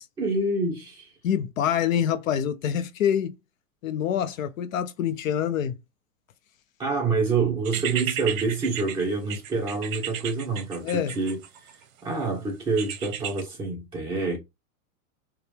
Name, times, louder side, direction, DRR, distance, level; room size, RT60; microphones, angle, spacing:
voice 1, 0.2-1.1 6.8-11.7 12.0-14.4, right 3 dB, 10° right, 1.6 m, -27 dB
voice 2, 1.2-3.4 3.8-5.8 10.8-11.2, left 9 dB, 65° left, 0.6 m, -26 dB
sound 1, 7.7-11.8 12.8-13.4, right 10 dB, 65° right, 0.9 m, -34 dB
4.5 x 2.1 x 3.3 m
supercardioid pair, 160°, 43 cm